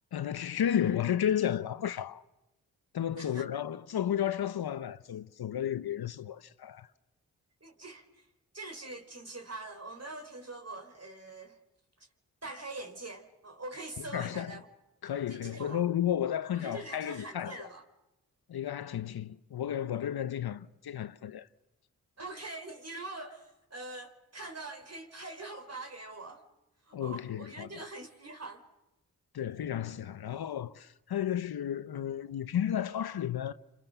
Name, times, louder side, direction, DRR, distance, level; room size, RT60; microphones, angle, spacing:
voice 1, 0.1-2.2 2.9-6.9 14.0-14.5 15.0-17.7 18.5-21.5 26.9-27.8 29.3-33.5, left 10 dB, 80° left, 1.0 m, -33 dB
voice 2, 7.6-8.3 8.5-11.6 12.4-14.6 15.3-15.9 16.5-17.8 22.2-26.5 26.8-28.7, right 2 dB, 40° right, 4.7 m, -43 dB
29.0 x 26.0 x 6.8 m
supercardioid pair, 40°, 37 cm